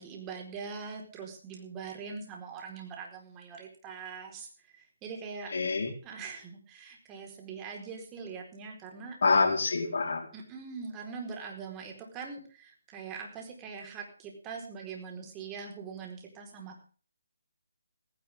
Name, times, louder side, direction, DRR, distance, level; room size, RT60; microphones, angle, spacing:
voice 1, 0.0-4.5 4.8-5.5 6.0-9.2 10.3-16.8, right 5 dB, 15° right, 1 dB, 4.5 m, -42 dB
voice 2, 5.5-5.9 9.2-10.3, left 4 dB, 60° left, 3 dB, 4.3 m, -26 dB
18.0 x 17.0 x 3.7 m, 0.39 s
figure-of-eight pair, 155°, 0 cm